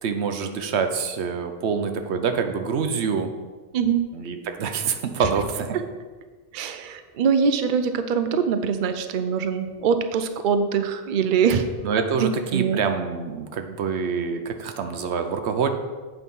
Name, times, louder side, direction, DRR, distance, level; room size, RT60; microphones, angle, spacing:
voice 1, 0.0-3.3 4.1-5.8 11.8-15.7, right 6 dB, 90° right, 7 dB, 1.0 m, -26 dB
voice 2, 3.7-4.0 5.2-5.3 6.5-11.7 12.2-12.8, right 6 dB, 55° right, 8 dB, 0.7 m, -23 dB
8.2 x 4.8 x 5.4 m, 1.3 s
omnidirectional pair, 1.1 m